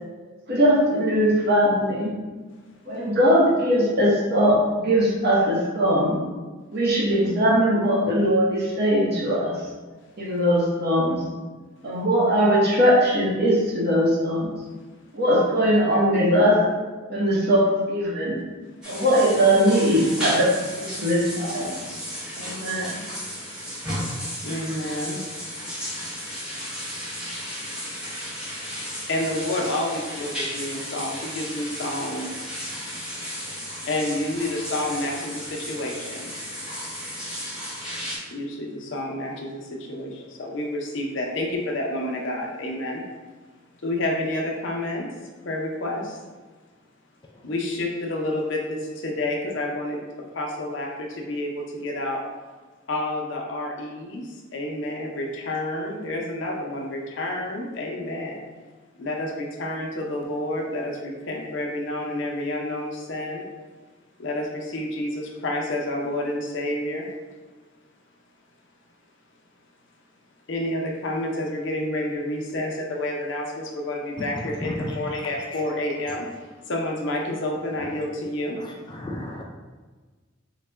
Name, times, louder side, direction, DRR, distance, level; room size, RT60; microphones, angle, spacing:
voice 1, 0.5-2.1 2.9-6.2 6.7-9.6 10.2-11.2 11.8-14.5 15.1-16.6 17.1-18.4 18.9-21.9 22.4-22.9, equal, 55° right, -4 dB, 0.9 m, -20 dB
sound 1, 18.8-38.2, equal, 5° right, 0.8 m, -34 dB
voice 2, 24.4-25.9 29.1-32.5 33.9-36.3 38.3-43.0 43.8-45.1 45.4-46.2 47.4-52.2 52.9-58.4 59.0-63.5 64.2-67.1 70.5-76.3 76.7-78.6, left 1 dB, 65° left, 0 dB, 0.6 m, -29 dB
voice 3, 74.6-74.9 78.9-79.4, left 1 dB, 25° left, 0 dB, 0.3 m, -32 dB
3.9 x 2.2 x 3.3 m, 1.3 s
head